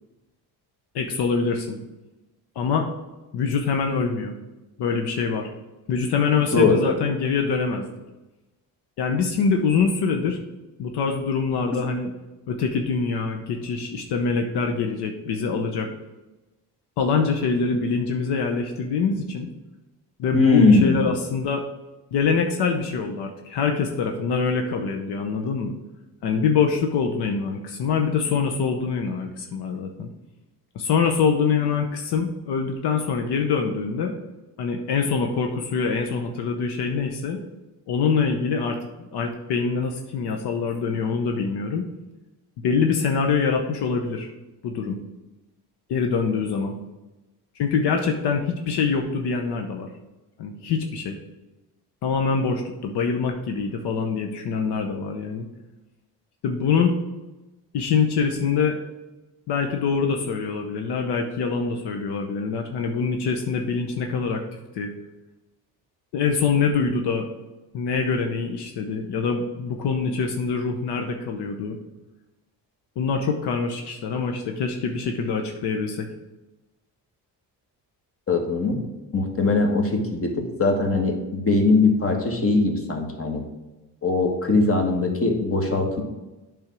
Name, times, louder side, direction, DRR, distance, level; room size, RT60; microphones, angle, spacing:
voice 1, 0.9-1.8 2.6-2.9 3.3-4.3 4.8-5.5 5.9-7.9 9.0-10.4 10.8-12.1 12.5-15.9 17.0-19.5 20.2-21.6 22.1-25.8 26.2-30.1 30.7-34.1 34.6-37.4 37.9-41.9 42.6-44.3 44.6-45.0 45.9-46.8 47.6-49.9 50.4-51.2 52.0-55.5 56.4-56.9 57.7-58.8 59.5-64.4 64.7-64.9 66.1-67.2 67.7-71.8 73.0-76.1, left 5 dB, 75° left, 4 dB, 0.9 m, -24 dB
voice 2, 6.5-6.8 20.3-21.0 78.3-78.8 79.1-80.3 80.6-83.4 84.0-86.0, left 3 dB, 35° left, 3 dB, 1.6 m, -20 dB
8.7 x 3.6 x 6.0 m, 1.1 s
cardioid pair, 80°, 40 cm